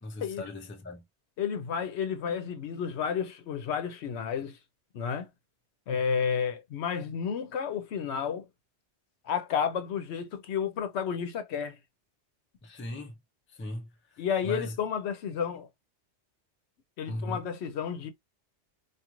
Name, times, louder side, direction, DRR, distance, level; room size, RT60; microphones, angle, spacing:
voice 1, 0.0-1.0 12.6-13.2 13.5-14.7 17.1-17.5, left 1 dB, 15° left, 0.4 m, -38 dB
voice 2, 1.4-4.6 4.9-5.3 5.9-8.5 9.2-11.8 14.2-15.7 17.0-18.1, left 7 dB, 70° left, 0.9 m, -31 dB
2.4 x 2.4 x 2.9 m
omnidirectional pair, 1.2 m